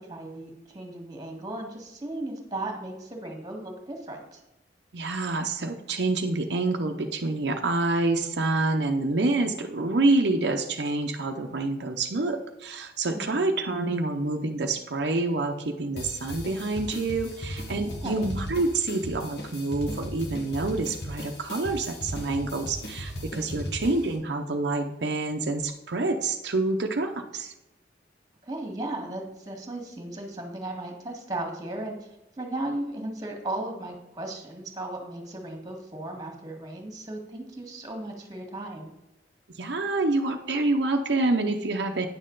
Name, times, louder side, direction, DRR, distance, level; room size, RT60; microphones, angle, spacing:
voice 1, 0.0-4.4 13.1-13.5 17.8-18.3 23.5-23.8 28.4-32.0 32.4-38.9, right 2 dB, 20° right, 2 dB, 1.8 m, -36 dB
voice 2, 4.9-27.5 39.5-42.1, right 2 dB, 70° right, 3 dB, 0.7 m, -27 dB
sound 1, 16.0-24.1, equal, 65° left, 1.6 m, -37 dB
9.6 x 6.5 x 3.9 m, 0.94 s
head